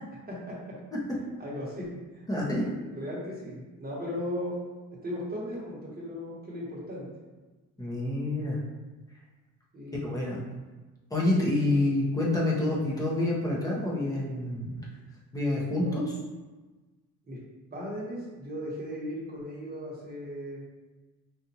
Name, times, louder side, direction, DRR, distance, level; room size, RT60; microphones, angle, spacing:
voice 1, 0.3-0.8 1.4-2.2 2.6-4.6 5.0-7.1 9.7-10.1 15.7-16.0 17.2-17.4 17.7-20.6, equal, 25° right, -5 dB, 1.2 m, -37 dB
voice 2, 2.3-2.6 7.8-8.6 10.0-10.4 11.1-14.9 15.3-16.1, left 1 dB, 10° left, -5 dB, 1.0 m, -27 dB
5.2 x 2.6 x 2.9 m, 1.2 s
cardioid pair, 140°, 35 cm